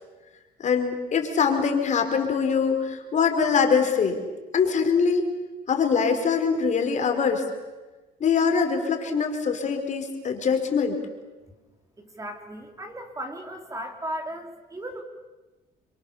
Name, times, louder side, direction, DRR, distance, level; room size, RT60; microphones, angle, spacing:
voice 1, 0.6-4.2 4.5-5.3 5.7-7.4 8.2-11.0, left 6 dB, 45° left, 5 dB, 4.3 m, -23 dB
voice 2, 12.0-15.0, right 1 dB, 20° right, 5 dB, 3.5 m, -36 dB
28.5 x 24.5 x 7.1 m, 1.2 s
cardioid pair, 110°, 17 cm